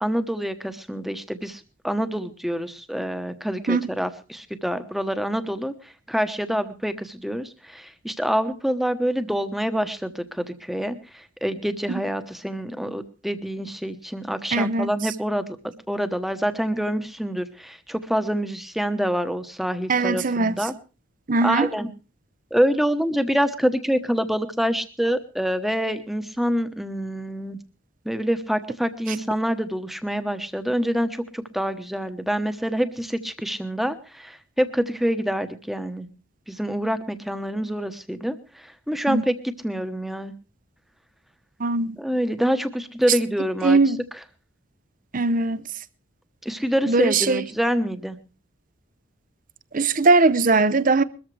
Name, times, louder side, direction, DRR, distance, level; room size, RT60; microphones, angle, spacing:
voice 1, 0.0-20.7 21.4-21.9 22.5-27.6 28.0-36.1 36.5-39.3 39.6-40.3 42.0-43.8 46.4-48.2, equal, ahead, 1.0 m, -26 dB
voice 2, 14.5-14.9 19.9-20.6 21.3-21.7 39.1-39.2 41.6-42.0 43.6-44.0 45.1-45.7 46.9-47.4 49.7-51.0, right 3 dB, 40° right, 0.7 m, -20 dB
22.0 x 14.0 x 3.3 m
head